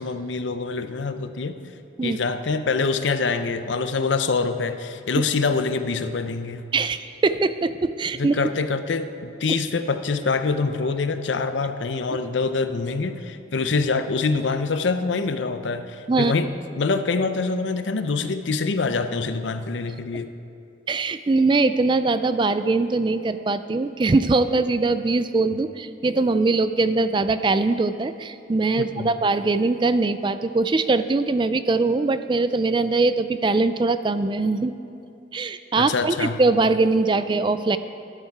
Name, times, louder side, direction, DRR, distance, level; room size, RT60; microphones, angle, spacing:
voice 1, 0.0-1.6 2.0-6.7 8.2-16.5 16.7-20.3 28.9-29.1 35.8-36.4, left 4 dB, 85° left, 10 dB, 0.6 m, -25 dB
voice 2, 6.7-8.4 16.1-16.3 20.9-34.7 35.3-37.8, right 3 dB, 25° right, 12 dB, 0.3 m, -22 dB
13.0 x 11.5 x 4.6 m, 2.7 s
head